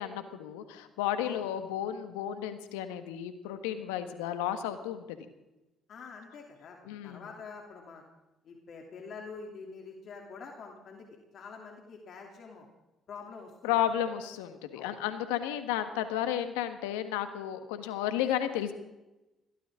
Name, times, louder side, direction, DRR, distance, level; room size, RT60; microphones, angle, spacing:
voice 1, 0.0-5.0 6.9-7.2 13.6-18.7, left 11 dB, 90° left, 9 dB, 1.5 m, -33 dB
voice 2, 5.9-6.8 7.0-8.0 8.4-11.1 11.3-12.7 13.1-13.8 14.7-15.0, left 5 dB, 60° left, 1 dB, 3.0 m, -46 dB
21.5 x 17.0 x 3.8 m, 1.0 s
hypercardioid pair, 55°, 0 cm